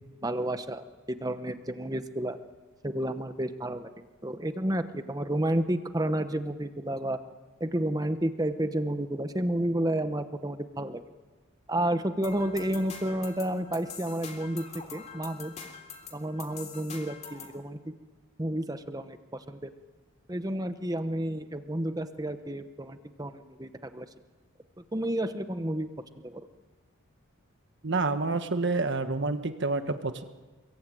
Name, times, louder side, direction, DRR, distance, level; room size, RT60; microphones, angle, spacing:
voice 1, 0.2-2.4 2.8-3.9 4.2-7.2 7.6-11.0 11.7-14.7 14.9-15.5 16.1-17.9 18.4-19.7 20.3-24.1 24.8-25.9 26.1-26.5, right 1 dB, 15° right, 9 dB, 1.0 m, -31 dB
sound 1, 12.2-17.6, left 6 dB, 30° left, 3.3 m, -45 dB
voice 2, 27.8-30.2, right 3 dB, 55° right, 9 dB, 1.4 m, -28 dB
28.5 x 23.0 x 9.2 m, 1.3 s
head